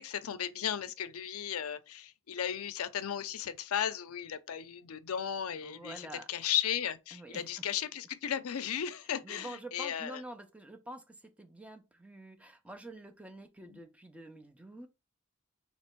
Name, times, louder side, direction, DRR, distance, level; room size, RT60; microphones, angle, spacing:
voice 1, 0.0-10.2 13.7-13.8, left 9 dB, 75° left, 0.5 m, -35 dB
voice 2, 5.6-6.3 7.1-7.6 9.2-14.9, right 1 dB, 5° right, 0.6 m, -47 dB
3.3 x 3.0 x 4.4 m
head